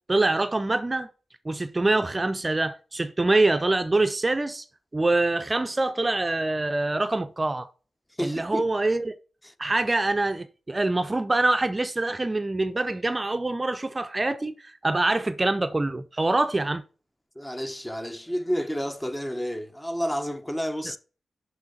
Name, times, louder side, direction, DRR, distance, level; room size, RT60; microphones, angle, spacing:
voice 1, 0.1-1.1 1.4-4.6 4.9-7.7 8.2-9.1 9.6-16.8, right 2 dB, 25° right, 0.5 m, -25 dB
voice 2, 8.2-8.7 9.4-9.5 17.4-21.0, equal, 10° left, 0.8 m, -30 dB
6.0 x 5.8 x 4.1 m
cardioid pair, 60°, 0 cm